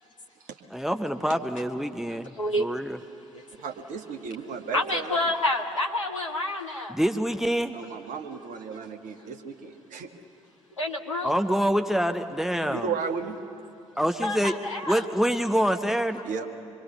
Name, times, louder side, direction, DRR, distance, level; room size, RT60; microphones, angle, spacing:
voice 1, 0.7-3.0 6.9-7.7 11.2-12.9 14.0-14.5 14.8-16.2, equal, ahead, 8 dB, 0.8 m, -26 dB
voice 2, 3.5-5.2 7.7-10.1 12.6-13.4 16.2-16.5, right 5 dB, 55° right, 4 dB, 1.4 m, -34 dB
voice 3, 4.7-6.9 10.8-11.4 14.2-15.1, left 1 dB, 85° left, 1 dB, 0.7 m, -28 dB
26.0 x 22.0 x 6.9 m, 2.7 s
figure-of-eight pair, 45°, 16 cm